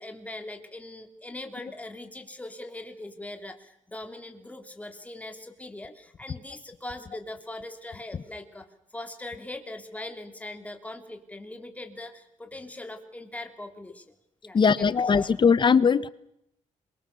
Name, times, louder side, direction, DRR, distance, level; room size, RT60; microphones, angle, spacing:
voice 1, 0.0-8.7 8.9-14.0 14.4-14.9 15.2-15.3, left 2 dB, 10° left, 6 dB, 3.0 m, -41 dB
voice 2, 14.5-16.1, left 6 dB, 35° left, 17 dB, 1.1 m, -20 dB
27.0 x 23.5 x 7.0 m, 0.78 s
cardioid pair, 125°, 13 cm